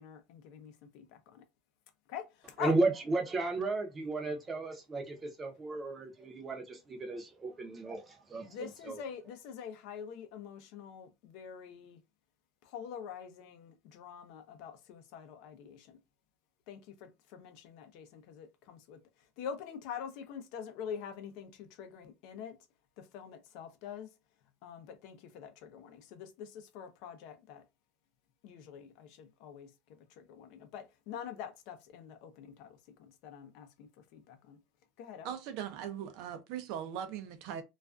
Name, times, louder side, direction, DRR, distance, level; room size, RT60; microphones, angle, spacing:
voice 1, 0.0-1.4 2.1-2.7 8.3-12.0 12.6-16.0 16.7-22.6 23.0-24.1 24.6-27.6 28.4-34.6 35.0-35.3, left 8 dB, 60° left, 0.5 m, -45 dB
voice 2, 2.6-9.0, right 2 dB, 15° right, 0.6 m, -34 dB
voice 3, 35.2-37.6, right 9 dB, 60° right, 0.5 m, -40 dB
2.3 x 2.2 x 2.4 m
supercardioid pair, 150°, 0 cm